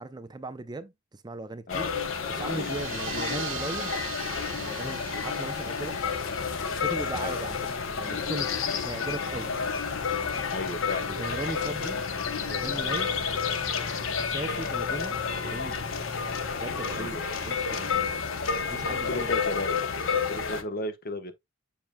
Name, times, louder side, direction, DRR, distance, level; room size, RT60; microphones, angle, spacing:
voice 1, 0.0-1.9 2.3-4.0 4.5-6.0 6.8-7.6 8.0-9.5 11.1-12.0 12.3-13.2 14.1-15.8 16.5-18.2 18.7-19.3, right 2 dB, 20° right, 0.5 m, -38 dB
sound 1, 1.7-20.6, left 5 dB, 85° left, 0.9 m, -30 dB
sound 2, 2.2-16.6, left 2 dB, 20° left, 1.0 m, -45 dB
sound 3, 2.3-7.9, right 11 dB, 75° right, 0.7 m, -42 dB
voice 2, 10.5-11.1 16.9-17.3 18.0-18.1 18.9-21.3, left 2 dB, 50° left, 1.0 m, -35 dB
7.3 x 5.9 x 2.2 m
head